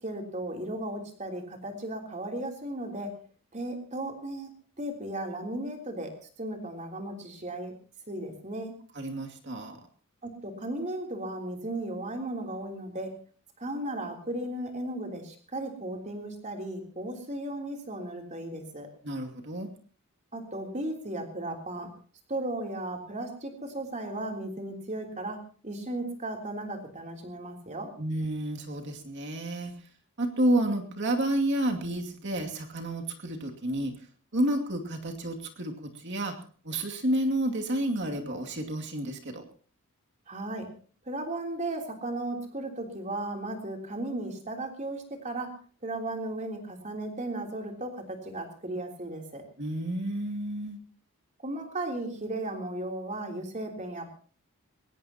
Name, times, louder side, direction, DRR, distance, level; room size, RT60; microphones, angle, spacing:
voice 1, 0.0-3.1 3.5-4.5 4.8-6.1 6.4-7.7 8.1-8.7 10.2-13.1 13.6-18.9 20.3-21.9 22.3-25.4 25.6-27.9 40.3-40.6 41.0-45.5 45.8-49.4 51.4-54.1, right 1 dB, 35° right, 2 dB, 3.4 m, -35 dB
voice 2, 8.9-9.8 19.0-19.7 28.0-29.7 30.2-33.9 34.3-36.3 36.6-39.4 49.6-50.8, right 1 dB, 50° right, 3 dB, 2.5 m, -30 dB
22.0 x 18.5 x 2.9 m, 0.41 s
head